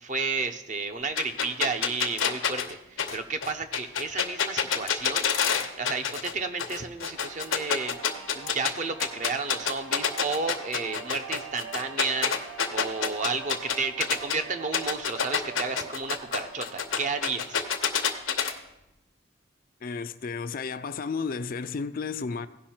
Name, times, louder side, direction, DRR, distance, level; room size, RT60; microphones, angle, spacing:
voice 1, 0.0-5.3 5.8-8.0 8.3-17.6, right 4 dB, 40° right, 0.7 m, -32 dB
sound 1, 1.2-6.3 6.6-8.7 9.0-14.4 14.7-18.5, left 7 dB, 85° left, 0.9 m, -27 dB
sound 2, 7.1-18.2, right 6 dB, 85° right, 0.9 m, -44 dB
voice 2, 19.8-22.5, left 5 dB, 45° left, 0.4 m, -32 dB
16.0 x 5.5 x 4.4 m
head